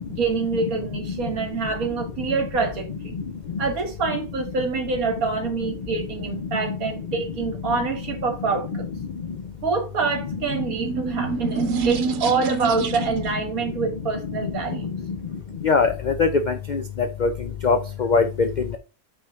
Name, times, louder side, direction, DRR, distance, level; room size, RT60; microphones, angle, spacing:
voice 1, 0.2-3.1 3.6-8.9 9.6-14.9, right 4 dB, 65° right, 2.0 m, -26 dB
sound 1, 10.3-13.4, right 5 dB, 85° right, 1.4 m, -27 dB
voice 2, 15.6-16.3 16.7-16.8 17.2-17.3 17.6-18.5, left 4 dB, 80° left, 0.4 m, -20 dB
5.8 x 3.5 x 5.6 m
omnidirectional pair, 1.6 m